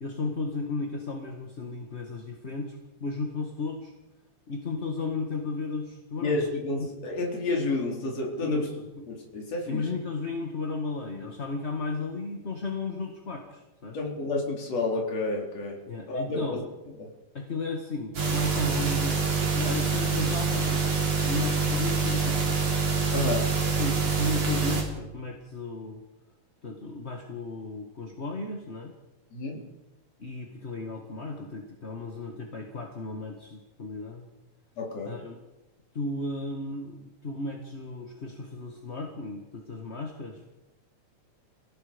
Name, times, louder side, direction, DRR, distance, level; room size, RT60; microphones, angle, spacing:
voice 1, 0.0-3.9 4.5-6.5 6.8-6.9 8.4-9.1 9.7-14.0 15.9-16.6 17.3-19.2 19.5-22.6 23.8-26.0 26.6-28.9 30.2-34.3 35.1-35.4 35.9-40.4, left 3 dB, 25° left, 2 dB, 1.6 m, -34 dB
voice 2, 6.2-8.6 9.1-9.8 13.9-15.8 16.1-16.6 17.0-17.1 23.1-23.5 29.3-29.6 34.8-35.2, left 2 dB, 60° left, -1 dB, 4.8 m, -30 dB
sound 1, 18.1-24.8, right 5 dB, 55° right, 4.9 m, -26 dB
29.5 x 17.0 x 5.2 m, 1.0 s
omnidirectional pair, 3.4 m